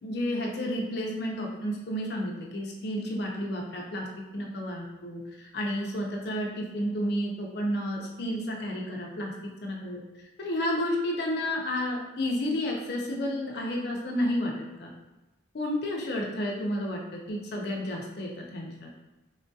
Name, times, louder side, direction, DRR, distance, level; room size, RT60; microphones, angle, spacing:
voice 1, 0.0-4.1 4.3-9.3 9.6-10.0 10.4-14.5 14.8-14.9 15.5-18.9, left 1 dB, 55° left, -1 dB, 0.5 m, -31 dB
3.6 x 2.3 x 2.6 m, 1.0 s
head